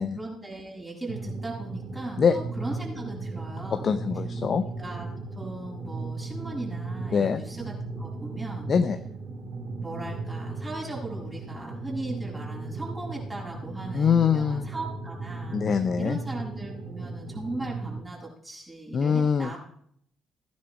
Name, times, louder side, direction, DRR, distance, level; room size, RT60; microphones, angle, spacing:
voice 1, 0.0-3.9 4.8-5.1 5.3-8.7 9.8-19.6, right 2 dB, 20° right, -3 dB, 6.7 m, -38 dB
sound 1, 1.1-18.0, right 3 dB, 60° right, 2.9 m, -36 dB
voice 2, 3.8-4.6 7.1-7.4 8.7-9.0 13.9-14.7 15.5-16.2 18.9-19.5, left 6 dB, 40° left, 11 dB, 0.6 m, -23 dB
16.0 x 10.5 x 4.5 m, 0.68 s
figure-of-eight pair, 45°, 0 cm